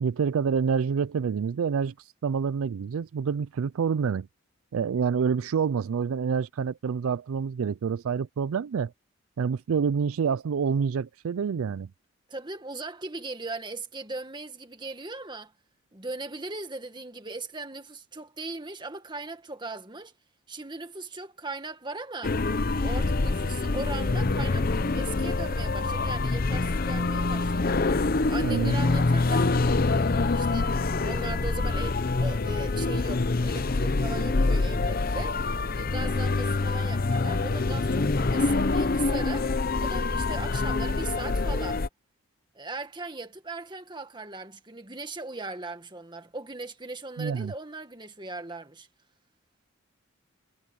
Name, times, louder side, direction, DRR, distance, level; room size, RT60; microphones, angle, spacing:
voice 1, 0.0-1.9 2.2-4.3 4.7-8.9 9.4-11.9 28.4-28.8 47.2-47.5, right 6 dB, 75° right, 0.4 m, -27 dB
voice 2, 12.3-15.5 15.9-20.1 20.5-22.4 22.8-27.8 28.3-29.5 30.3-30.7 31.0-35.4 35.7-39.5 39.8-41.8 42.6-48.9, right 3 dB, 20° right, 1.8 m, -39 dB
sound 1, 22.2-41.9, left 3 dB, 45° left, 0.7 m, -26 dB
head